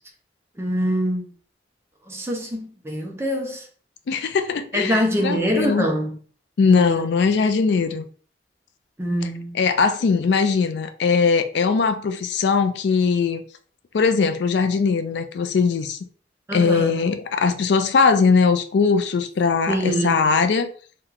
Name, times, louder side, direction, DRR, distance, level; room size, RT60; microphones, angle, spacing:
voice 1, 0.6-1.3 2.1-3.7 4.7-6.2 6.6-7.0 9.0-9.6 16.5-17.0 19.7-20.2, equal, 15° right, 0.6 m, -24 dB
voice 2, 4.1-5.9 6.6-8.0 9.5-13.4 13.9-16.0 16.5-20.7, left 5 dB, 75° left, 0.4 m, -20 dB
2.9 x 2.2 x 3.7 m
head